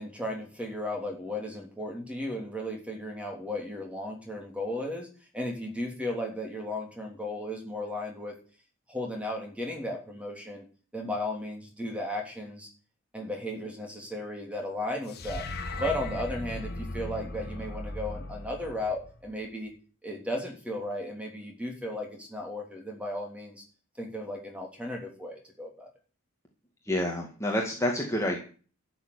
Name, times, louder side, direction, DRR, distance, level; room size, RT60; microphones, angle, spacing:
voice 1, 0.0-5.1 5.3-8.3 8.9-10.6 10.9-12.7 13.1-15.5 15.8-19.7 20.0-23.6 24.0-25.9, left 1 dB, 5° right, 1 dB, 3.1 m, -35 dB
sound 1, 15.1-19.4, left 2 dB, 45° left, 1.3 m, -37 dB
voice 2, 26.8-28.4, left 1 dB, 15° left, 0 dB, 2.0 m, -28 dB
12.0 x 7.0 x 9.8 m, 0.40 s
head